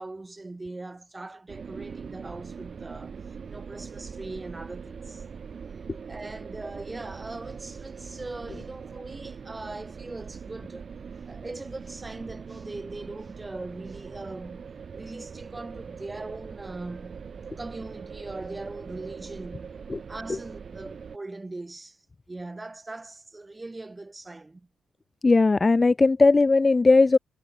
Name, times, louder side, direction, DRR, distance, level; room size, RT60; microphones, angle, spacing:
voice 1, 0.0-3.2 3.4-5.2 6.1-10.9 11.3-17.3 17.6-19.7 20.1-22.0 22.3-24.7, right 2 dB, 20° right, 5.1 m, -40 dB
sound 1, 1.5-21.2, right 6 dB, 45° right, 1.7 m, -42 dB
voice 2, 25.2-27.2, left 3 dB, 25° left, 0.6 m, -18 dB
cardioid pair, 90°, 0 cm